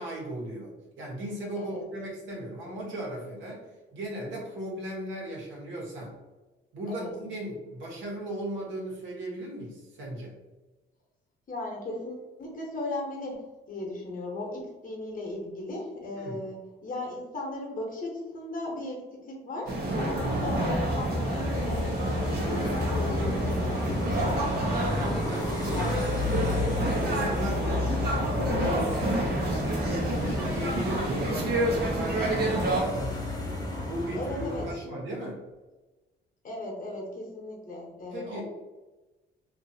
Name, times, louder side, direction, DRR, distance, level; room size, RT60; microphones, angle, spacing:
voice 1, 0.0-6.2 6.7-10.3 16.2-16.4 20.0-20.5 24.9-25.4 26.8-33.2 33.9-35.4 38.1-38.4, right 1 dB, 75° right, -4 dB, 1.2 m, -37 dB
voice 2, 11.5-24.6 25.0-26.6 34.1-35.0 36.4-38.4, left 2 dB, 45° left, -1 dB, 1.0 m, -37 dB
sound 1, 19.7-32.8, right 1 dB, 55° right, 0.8 m, -29 dB
sound 2, 20.2-34.7, left 2 dB, 20° left, 0.9 m, -32 dB
2.7 x 2.6 x 2.7 m, 1.1 s
cardioid pair, 90°, 20 cm